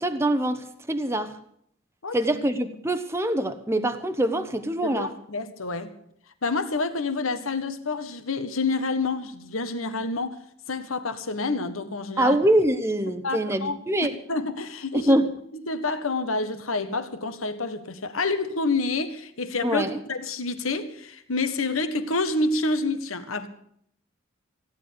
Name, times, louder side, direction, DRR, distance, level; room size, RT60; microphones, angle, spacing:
voice 1, 0.0-1.3 2.1-5.1 12.2-14.1 14.9-15.3 19.6-20.0, right 1 dB, 15° right, 0.8 m, -24 dB
voice 2, 4.8-5.9 6.4-10.4 10.7-12.4 13.2-13.8 14.3-15.2 15.7-23.5, left 3 dB, 90° left, 1.6 m, -28 dB
16.0 x 10.0 x 8.6 m
head